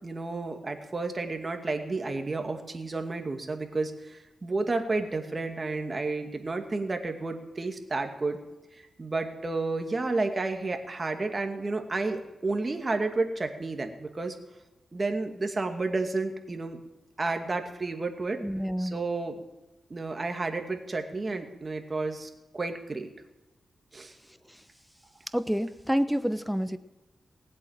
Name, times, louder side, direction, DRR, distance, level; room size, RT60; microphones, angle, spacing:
voice 1, 0.0-8.4 9.0-14.3 14.9-16.8 17.2-18.4 18.8-19.3 19.9-23.1 23.9-24.1, right 3 dB, 35° right, 5 dB, 2.3 m, -31 dB
voice 2, 18.3-19.0 25.3-26.8, equal, ahead, 12 dB, 1.0 m, -28 dB
19.0 x 8.4 x 7.5 m, 1.1 s
cardioid pair, 70°, 0 cm